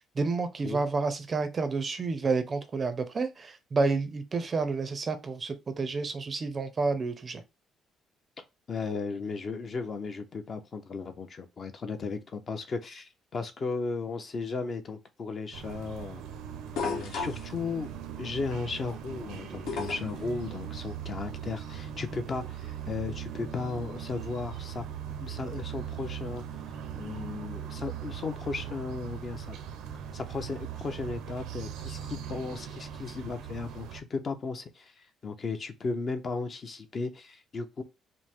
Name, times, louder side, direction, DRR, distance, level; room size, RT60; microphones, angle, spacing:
voice 1, 0.2-7.4, right 4 dB, 25° right, 0.5 m, -30 dB
voice 2, 8.7-16.2 16.8-17.9 18.2-24.8 25.2-26.4 26.9-29.6 30.1-34.9 35.2-37.8, left 4 dB, 30° left, 0.5 m, -35 dB
sound 1, 15.5-34.0, right 9 dB, 90° right, 0.6 m, -40 dB
sound 2, 16.8-17.5 19.7-20.2 21.8-21.9, left 5 dB, 70° left, 1.3 m, -32 dB
5.1 x 2.0 x 3.5 m
cardioid pair, 165°, 0 cm